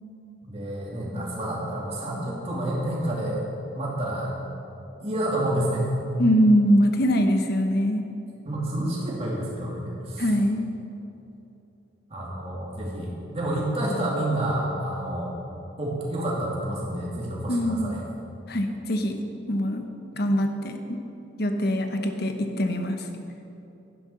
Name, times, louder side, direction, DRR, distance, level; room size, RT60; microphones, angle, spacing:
voice 1, 0.4-3.5 3.7-4.3 5.0-5.9 8.4-10.2 12.1-15.3 15.8-18.0, right 1 dB, 30° right, -4 dB, 2.5 m, -29 dB
voice 2, 6.2-8.0 10.2-10.7 17.5-18.0 18.5-19.2 19.5-19.9 20.2-21.0 21.4-23.1, equal, 50° left, 5 dB, 1.0 m, -23 dB
11.5 x 9.9 x 5.6 m, 2.9 s
head